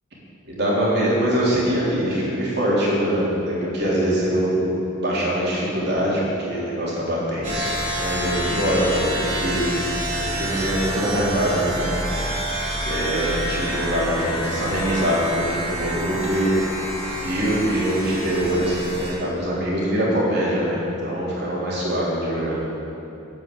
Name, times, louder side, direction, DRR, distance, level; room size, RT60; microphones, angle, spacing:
voice 1, 0.5-4.6 5.0-9.6 10.2-12.0 12.8-16.5 17.2-22.6, equal, 50° right, -6 dB, 3.5 m, -23 dB
sound 1, 7.4-19.1, equal, 30° right, 2.8 m, -28 dB
9.2 x 9.2 x 8.5 m, 2.9 s
head